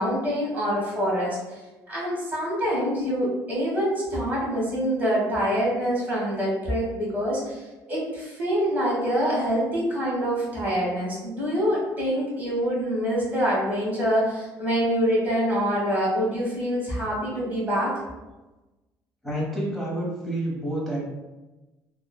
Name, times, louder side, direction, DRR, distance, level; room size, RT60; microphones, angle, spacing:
voice 1, 0.0-1.6 1.9-17.9, equal, 25° right, -5 dB, 1.4 m, -25 dB
voice 2, 19.2-21.0, right 1 dB, 5° left, -6 dB, 1.0 m, -29 dB
3.0 x 2.1 x 2.2 m, 1.1 s
cardioid pair, 95°, 7 cm